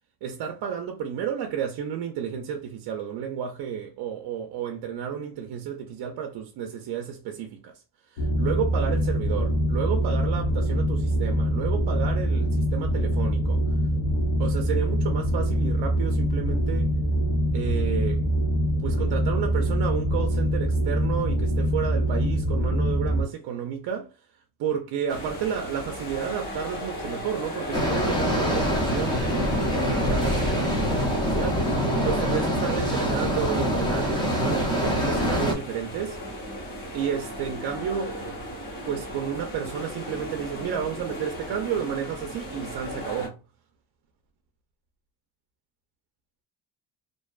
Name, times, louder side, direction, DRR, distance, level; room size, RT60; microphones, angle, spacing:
voice 1, 0.2-13.7 14.4-16.9 17.5-18.2 18.8-36.5 36.9-38.2 38.8-43.4, right 8 dB, 55° right, 0.5 m, -32 dB
sound 1, 8.2-23.2, equal, 65° left, 0.8 m, -24 dB
sound 2, 25.1-43.3, equal, 45° left, 1.2 m, -36 dB
sound 3, 27.7-35.5, equal, 10° left, 0.5 m, -25 dB
2.5 x 2.2 x 2.2 m
cardioid pair, 155°, 46 cm